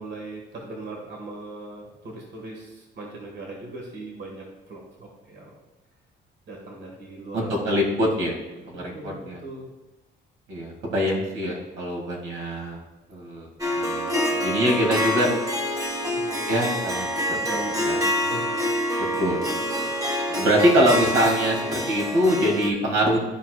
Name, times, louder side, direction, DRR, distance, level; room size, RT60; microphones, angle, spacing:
voice 1, 0.0-5.5 6.5-7.5 7.9-8.1 8.7-9.7 15.9-16.4 17.3-18.6, right 2 dB, 60° right, -1 dB, 1.8 m, -39 dB
voice 2, 7.3-8.3 8.7-8.8 9.3-9.4 10.5-12.8 13.1-13.5 13.8-15.3 16.5-17.1 17.9-18.0 19.2-19.4 19.7-19.9 20.3-23.2, equal, 80° right, -1 dB, 2.3 m, -23 dB
Harp, 13.6-22.7, equal, 15° right, 1.4 m, -26 dB
13.0 x 4.8 x 2.4 m, 1.1 s
cardioid pair, 90°, 20 cm